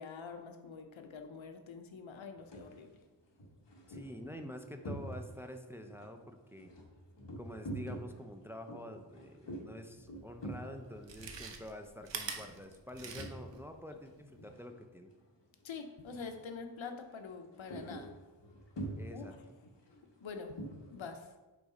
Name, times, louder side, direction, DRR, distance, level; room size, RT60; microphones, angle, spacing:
voice 1, 0.0-2.9 15.6-18.1 19.1-19.3 20.2-20.6 20.9-21.3, left 5 dB, 85° left, 6 dB, 0.7 m, -45 dB
sound 1, 2.4-2.8 3.3-5.5 5.8-13.7 14.0-15.1 15.4-15.7 16.0-16.5 16.8-21.0, right 1 dB, 65° left, 1.2 m, -46 dB
voice 2, 3.9-6.7 7.4-15.1 19.0-19.3, left 1 dB, 5° right, 6 dB, 0.4 m, -47 dB
Chewing mastication, 10.2-10.3 10.9-13.6 13.9-14.0, right 5 dB, 70° right, 0.8 m, -44 dB
5.0 x 3.9 x 5.0 m, 1.2 s
wide cardioid pair, 65°, 46 cm